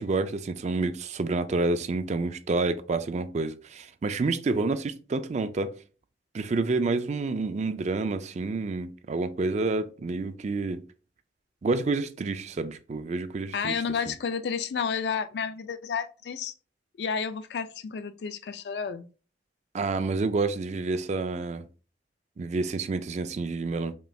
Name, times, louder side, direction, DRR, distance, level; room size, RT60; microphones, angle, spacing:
voice 1, 0.0-5.7 6.3-10.8 11.6-13.8 19.7-21.7 22.4-23.9, right 3 dB, 40° right, 0.4 m, -29 dB
voice 2, 13.5-16.5 17.0-19.1, left 6 dB, 65° left, 0.4 m, -31 dB
5.2 x 3.2 x 2.3 m
head